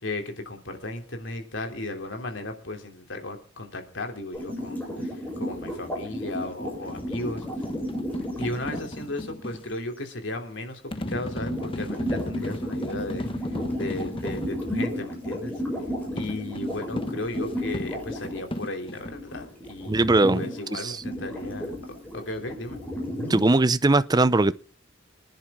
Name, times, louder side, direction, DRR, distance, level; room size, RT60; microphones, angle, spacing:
voice 1, 0.0-7.4 8.4-10.8 11.1-15.5 16.1-22.8, left 2 dB, 70° left, 3.2 m, -35 dB
sound 1, 4.3-8.8 11.1-18.7 18.9-20.6 21.0-23.5, equal, 10° left, 6.7 m, -33 dB
sound 2, 6.7-9.6 10.9-14.6 16.2-19.2, left 1 dB, 30° left, 1.2 m, -35 dB
voice 2, 19.9-20.4 20.7-21.0 23.3-24.5, right 2 dB, 20° right, 0.6 m, -20 dB
25.5 x 10.5 x 3.7 m
head